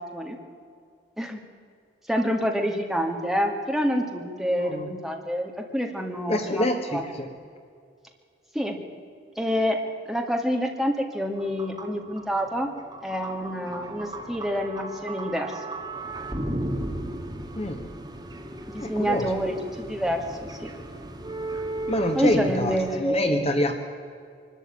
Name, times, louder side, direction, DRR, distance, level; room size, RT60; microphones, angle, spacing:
voice 1, 2.1-7.0 8.5-8.8 9.4-9.8 10.1-12.7 13.0-15.5 18.7-20.7 22.1-23.5, equal, ahead, 2 dB, 2.2 m, -27 dB
voice 2, 4.6-4.9 6.3-7.3 17.5-17.9 18.8-19.3 21.9-23.7, left 1 dB, 35° left, 6 dB, 1.5 m, -26 dB
sound 1, 11.3-22.9, right 1 dB, 25° right, 1.9 m, -36 dB
24.0 x 13.0 x 8.6 m, 2.2 s
head